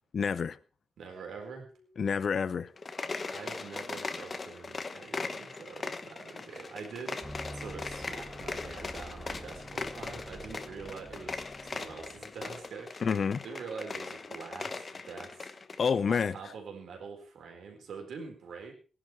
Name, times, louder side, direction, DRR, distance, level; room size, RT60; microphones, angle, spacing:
voice 1, 0.1-0.6 2.0-2.7 13.0-13.4 15.8-16.4, left 6 dB, 50° left, 0.7 m, -28 dB
voice 2, 1.0-1.7 3.3-13.2 13.4-15.5 16.1-18.7, right 5 dB, 80° right, 4.3 m, -45 dB
sound 1, 1.4-17.9, left 3 dB, 15° left, 3.9 m, -63 dB
sound 2, 2.7-16.0, left 4 dB, 30° left, 1.2 m, -40 dB
sound 3, 7.2-12.6, equal, 10° right, 3.3 m, -47 dB
18.5 x 11.0 x 4.5 m
wide cardioid pair, 145°, 0 cm